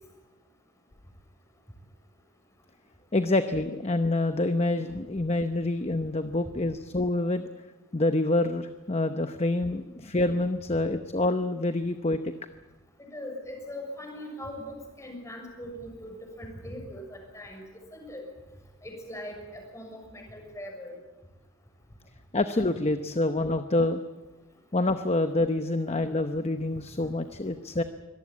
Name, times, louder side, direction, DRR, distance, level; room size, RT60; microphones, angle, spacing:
voice 1, 3.1-7.5 7.9-12.3 22.3-24.0 24.7-27.8, left 2 dB, 30° left, 9 dB, 0.8 m, -27 dB
voice 2, 13.0-17.6 17.9-18.2 18.8-21.0, left 1 dB, 15° left, 2 dB, 6.5 m, -40 dB
24.5 x 18.5 x 8.6 m, 1.2 s
head